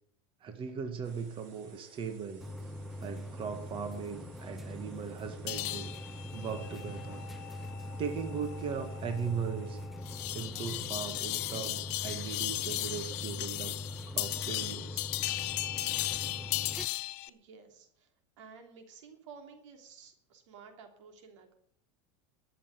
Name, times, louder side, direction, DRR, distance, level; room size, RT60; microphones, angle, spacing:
voice 1, 0.4-2.5 3.0-5.9 6.3-7.2 8.0-9.8 10.3-13.7 14.1-15.1, right 6 dB, 35° right, 6 dB, 1.8 m, -38 dB
sound 1, 1.0-9.9, right 4 dB, 55° right, 4.5 m, -58 dB
sound 2, 2.4-16.9, left 1 dB, ahead, 0.6 m, -43 dB
sound 3, 5.5-17.3, left 19 dB, 65° left, 0.8 m, -37 dB
voice 2, 17.3-18.1 18.4-21.5, right 5 dB, 85° right, 4 dB, 3.2 m, -53 dB
13.0 x 6.9 x 9.7 m, 0.67 s
supercardioid pair, 125°, 15 cm